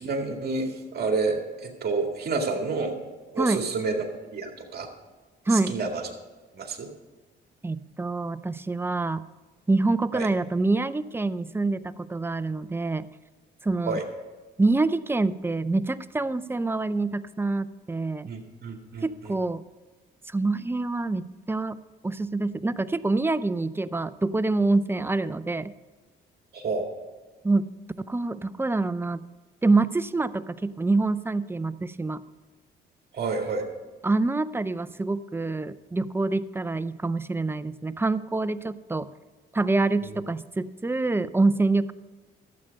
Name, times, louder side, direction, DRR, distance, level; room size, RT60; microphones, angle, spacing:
voice 1, 0.0-2.9 3.3-4.9 5.5-6.0 6.5-6.9 10.1-10.3 13.9-14.0 18.3-19.3 26.5-26.9 33.1-33.7, right 4 dB, 50° right, 2 dB, 2.2 m, -29 dB
voice 2, 7.6-9.2 9.7-13.1 13.6-14.0 14.6-18.3 19.0-19.6 20.3-21.8 22.0-25.7 27.4-27.7 28.0-29.2 29.6-32.2 34.0-39.1 39.5-41.9, right 3 dB, 10° right, 14 dB, 0.5 m, -26 dB
12.5 x 8.1 x 5.3 m, 1.3 s
cardioid pair, 90°, 20 cm